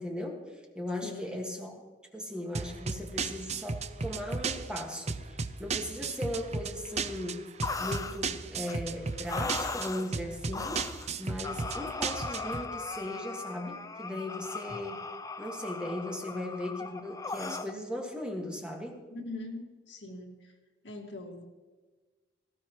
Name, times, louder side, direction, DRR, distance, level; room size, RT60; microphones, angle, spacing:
voice 1, 0.0-1.7 2.1-7.4 7.8-10.8 11.2-15.0 15.4-19.0, left 1 dB, 5° right, 1 dB, 1.6 m, -38 dB
voice 2, 1.0-1.4 19.1-20.4 20.8-21.4, left 2 dB, 85° left, 2 dB, 1.9 m, -41 dB
sound 1, 2.5-12.6, right 4 dB, 40° right, 0.5 m, -35 dB
sound 2, 7.6-8.2 8.6-8.8 9.2-10.1 10.5-11.1 11.4-17.7, left 4 dB, 20° left, 0.6 m, -38 dB
18.5 x 14.0 x 3.0 m, 1.3 s
head